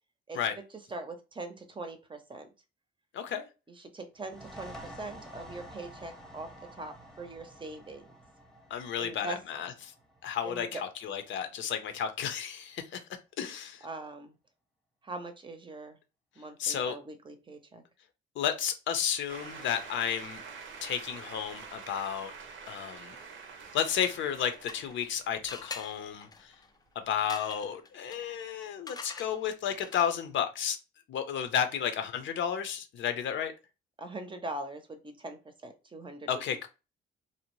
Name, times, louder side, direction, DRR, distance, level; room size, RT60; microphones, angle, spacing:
voice 1, 0.3-0.6 0.9-2.5 3.8-8.1 9.0-9.4 10.4-10.8 13.8-14.4 15.0-16.0 16.4-17.8 34.0-36.4, right 2 dB, 25° right, 0.6 m, -42 dB
voice 2, 3.1-3.5 8.7-9.7 10.2-13.0 13.4-13.9 16.6-17.0 18.4-20.4 20.8-22.3 22.7-23.2 23.7-26.5 27.1-30.8 31.1-33.5 36.3-36.7, left 8 dB, 70° left, 0.6 m, -32 dB
sound 1, 4.2-11.6, equal, ahead, 0.9 m, -50 dB
sound 2, 19.3-26.1, right 5 dB, 75° right, 0.6 m, -47 dB
sound 3, 24.2-25.1 25.5-30.3, left 4 dB, 20° left, 0.4 m, -46 dB
2.7 x 2.1 x 3.0 m
cardioid pair, 90°, 20 cm